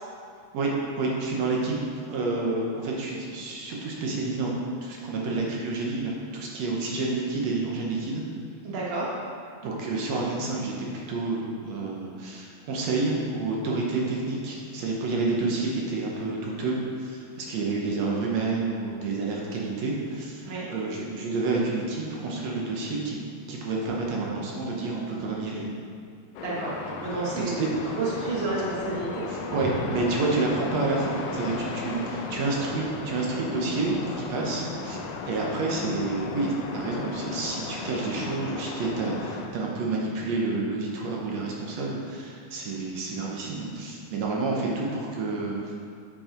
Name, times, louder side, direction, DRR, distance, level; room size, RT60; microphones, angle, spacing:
voice 1, 0.5-1.7 2.1-4.5 4.8-8.2 9.6-23.2 23.5-25.7 27.3-27.7 29.3-35.0 35.3-45.8, right 3 dB, 70° right, -2 dB, 2.1 m, -29 dB
voice 2, 8.6-9.1 20.4-20.7 26.4-26.7 27.0-29.2 29.6-29.7, right 3 dB, 35° right, -6 dB, 1.1 m, -30 dB
sound 1, 26.3-39.5, left 4 dB, 75° left, 1.7 m, -35 dB
8.7 x 5.3 x 4.4 m, 2.3 s
omnidirectional pair, 3.3 m